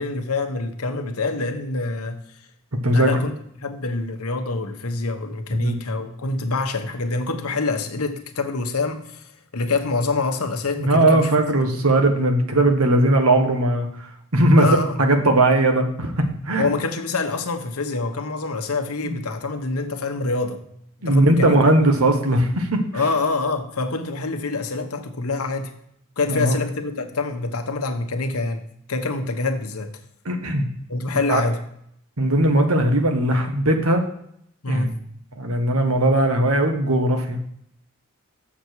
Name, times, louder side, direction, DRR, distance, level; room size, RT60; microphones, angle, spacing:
voice 1, 0.0-2.2 2.9-9.3 9.5-11.3 11.6-11.7 14.6-15.0 16.6-20.6 21.0-21.6 22.9-25.7 26.2-28.6 28.9-29.9 30.9-31.6 34.6-35.0, left 3 dB, 80° left, 6 dB, 1.1 m, -26 dB
voice 2, 2.8-3.2 5.6-5.7 10.9-13.9 14.3-14.7 15.0-16.7 19.0-19.2 21.0-22.8 26.3-26.6 30.2-30.7 31.3-31.4 32.2-34.0 34.7-34.9 35.4-37.4, right 1 dB, 75° right, 5 dB, 1.4 m, -18 dB
7.2 x 7.1 x 4.6 m, 0.71 s
head